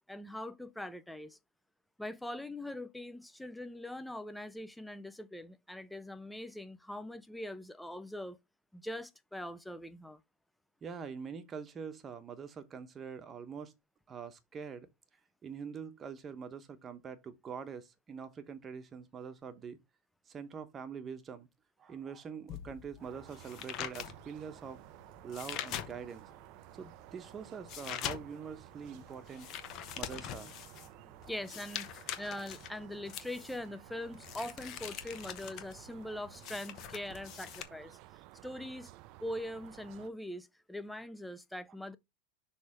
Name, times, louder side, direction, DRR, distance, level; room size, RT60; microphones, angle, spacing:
voice 1, 0.0-1.4 2.0-8.4 8.7-10.2 31.3-38.0 38.4-38.9 39.2-42.0, left 1 dB, 5° left, 0.5 m, -42 dB
voice 2, 10.8-13.7 14.1-14.9 15.4-19.8 20.3-21.5 21.8-24.8 25.2-29.5 30.0-30.9 31.2-31.3 32.2-32.3, right 6 dB, 25° right, 1.0 m, -44 dB
sound 1, 22.5-26.3 26.8-37.6, left 11 dB, 40° left, 1.0 m, -43 dB
sound 2, 23.0-40.1, right 16 dB, 50° right, 0.4 m, -55 dB
6.2 x 3.3 x 4.8 m
supercardioid pair, 130°, 0 cm